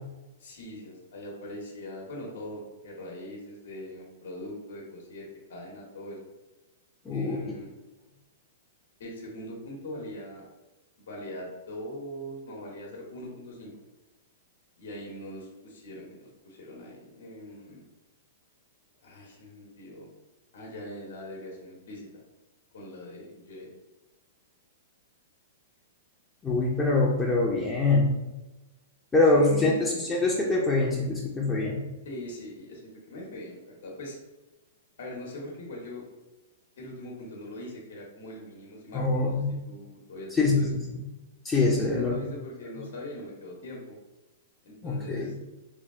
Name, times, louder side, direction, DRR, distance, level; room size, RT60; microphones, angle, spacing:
voice 1, 0.4-6.2 7.1-7.7 9.0-10.4 11.0-13.7 14.8-17.8 19.0-20.1 20.5-22.1 22.7-23.7 29.3-30.2 32.0-34.2 35.0-36.0 36.8-40.7 41.8-43.9 44.6-45.3, left 1 dB, 70° left, -1 dB, 0.9 m, -41 dB
voice 2, 7.0-7.4 26.4-28.2 29.1-31.9 38.9-39.6 40.3-41.0 41.4-42.2 44.8-45.4, left 2 dB, 15° left, -3 dB, 0.5 m, -24 dB
3.3 x 2.3 x 3.6 m, 1.1 s
hypercardioid pair, 135°, 0 cm